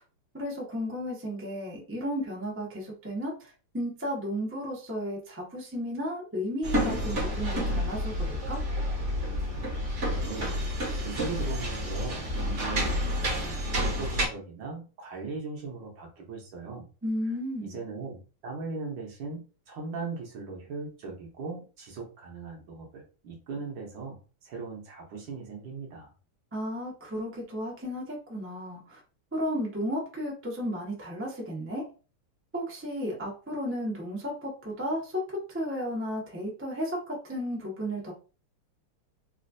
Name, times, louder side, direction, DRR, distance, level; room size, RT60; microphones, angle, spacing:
voice 1, 0.3-3.3 3.7-8.6 17.0-17.8 26.5-29.0 29.3-31.8 32.5-35.1 35.5-38.1, equal, 15° right, -3 dB, 0.4 m, -33 dB
sound 1, 6.6-14.3, equal, 45° right, 1.0 m, -29 dB
voice 2, 10.0-10.6 11.0-16.9 17.2-26.1, right 4 dB, 65° right, 1 dB, 1.4 m, -39 dB
4.1 x 2.4 x 2.5 m, 0.35 s
omnidirectional pair, 2.4 m